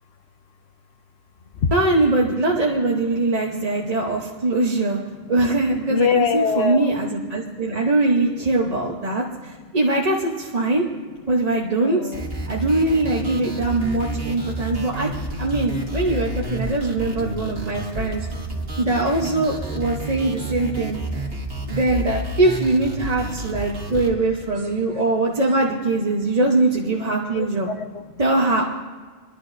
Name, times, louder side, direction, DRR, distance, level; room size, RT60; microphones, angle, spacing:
voice 1, 1.7-5.0 5.3-10.9 11.3-12.1 12.5-15.1 15.4-18.3 18.8-21.0 21.7-27.7 28.2-28.6, right 2 dB, 35° right, -3 dB, 1.0 m, -22 dB
voice 2, 5.9-7.0 9.1-9.2 11.8-12.3 13.8-13.9 14.6-14.9 17.2-17.4 17.7-18.8 20.8-20.9 21.3-21.8 23.7-23.9 27.3-28.1, left 6 dB, 75° left, 8 dB, 1.1 m, -26 dB
sound 1, 12.1-24.1, right 1 dB, 60° right, 1.9 m, -30 dB
24.5 x 11.5 x 2.7 m, 1.4 s
omnidirectional pair, 1.1 m